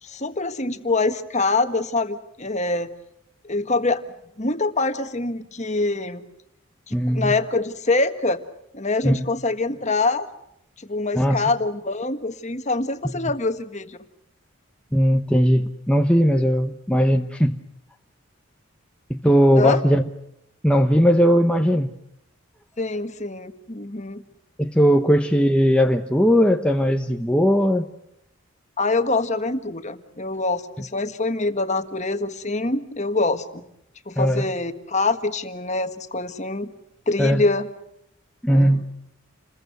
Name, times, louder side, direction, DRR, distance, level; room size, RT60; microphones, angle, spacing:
voice 1, 0.0-2.9 3.4-4.0 4.4-6.2 6.9-8.4 8.7-10.3 10.8-14.0 19.6-19.8 22.8-24.2 28.8-33.6 34.1-36.7 37.1-37.7 38.5-38.8, left 3 dB, 35° left, 9 dB, 1.6 m, -25 dB
voice 2, 6.9-7.3 9.0-9.3 11.1-11.4 14.9-17.6 19.1-20.0 20.6-21.9 24.6-27.9 34.2-34.4 37.2-37.4 38.4-38.8, equal, 5° left, 4 dB, 0.9 m, -18 dB
29.0 x 21.5 x 7.9 m, 0.78 s
head